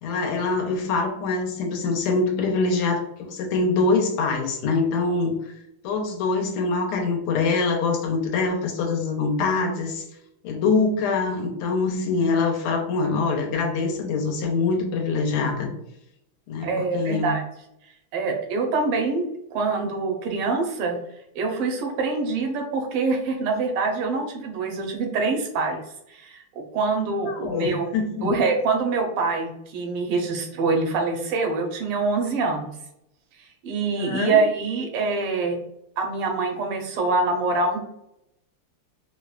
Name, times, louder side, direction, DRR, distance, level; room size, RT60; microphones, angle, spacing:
voice 1, 0.0-5.4 5.8-10.0 10.4-15.7 16.5-17.4 27.3-28.3 34.0-34.4, left 4 dB, 85° left, 2 dB, 1.6 m, -24 dB
voice 2, 16.6-17.4 18.1-21.0 21.3-25.8 26.1-27.9 28.2-32.7 33.6-35.6 36.0-37.8, right 3 dB, 90° right, 2 dB, 1.7 m, -25 dB
4.8 x 2.1 x 2.3 m, 0.78 s
omnidirectional pair, 2.4 m